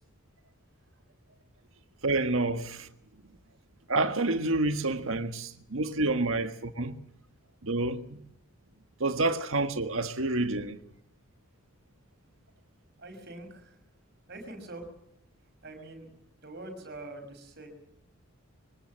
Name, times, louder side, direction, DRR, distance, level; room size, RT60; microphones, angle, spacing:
voice 1, 2.0-2.9 3.9-7.0 7.6-8.2 9.0-10.8, right 2 dB, 65° right, 1.7 m, -28 dB
voice 2, 13.0-13.8 14.3-14.9 15.6-16.1 16.4-17.7, right 2 dB, 50° right, 5.8 m, -44 dB
23.5 x 17.5 x 7.8 m
head